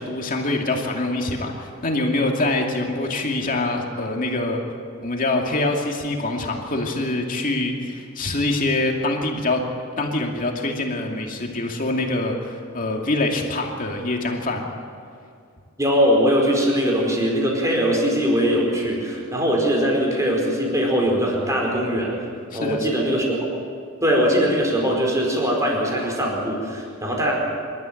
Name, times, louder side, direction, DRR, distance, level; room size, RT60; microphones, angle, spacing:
voice 1, 0.0-4.6 5.0-9.6 10.0-14.7 22.5-23.1, left 2 dB, 40° left, 1 dB, 2.5 m, -25 dB
voice 2, 15.8-22.1 22.5-23.3 24.0-27.3, equal, 15° right, -1 dB, 4.6 m, -21 dB
26.5 x 13.0 x 9.1 m, 2.4 s
head